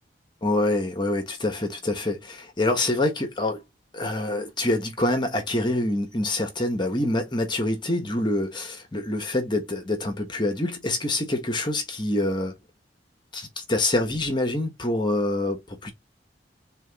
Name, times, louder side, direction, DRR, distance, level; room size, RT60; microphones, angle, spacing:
voice 1, 0.4-3.6 3.9-12.5 13.3-15.9, left 1 dB, 25° left, 1.3 m, -26 dB
3.9 x 3.5 x 3.4 m
head